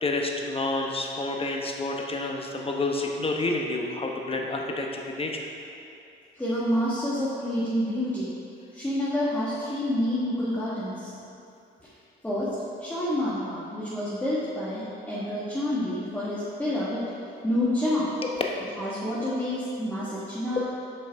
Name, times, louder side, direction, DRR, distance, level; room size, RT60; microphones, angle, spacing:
voice 1, 0.0-5.5 18.2-18.3, left 2 dB, 30° left, 1 dB, 1.0 m, -29 dB
voice 2, 6.3-8.3 8.7-11.1 11.8-11.9 12.2-12.5 12.8-17.1 17.4-18.1 18.8-20.6, left 1 dB, 10° left, -9 dB, 1.7 m, -28 dB
6.8 x 6.0 x 4.7 m, 2.7 s
cardioid pair, 90°, 20 cm